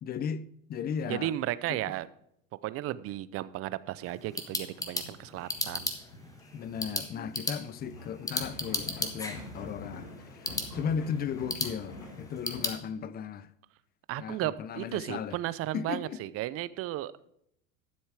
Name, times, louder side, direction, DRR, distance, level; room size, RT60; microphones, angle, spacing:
voice 1, 0.0-1.3 1.7-1.8 6.5-13.5 14.2-15.4 15.7-16.2, left 7 dB, 25° left, 0.5 m, -36 dB
voice 2, 1.1-2.1 2.6-5.9 10.7-10.9 14.1-17.3, right 14 dB, 35° right, 0.6 m, -34 dB
sound 1, 4.0-12.8, left 2 dB, 10° left, 1.3 m, -37 dB
sound 2, 4.8-12.6, left 2 dB, 90° left, 3.1 m, -46 dB
12.0 x 7.1 x 4.8 m
supercardioid pair, 110°, 40 cm